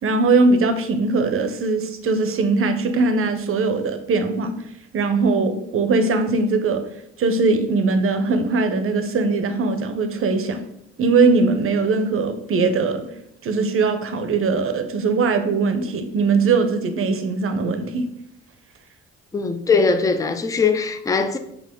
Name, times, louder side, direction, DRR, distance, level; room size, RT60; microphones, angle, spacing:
voice 1, 0.0-4.5 4.9-6.8 7.2-10.6 11.0-13.0 13.4-18.0, right 3 dB, 45° right, 0.6 m, -20 dB
voice 2, 19.3-21.4, left 4 dB, 10° left, 0.3 m, -20 dB
5.3 x 2.4 x 3.6 m
cardioid pair, 90°, 30 cm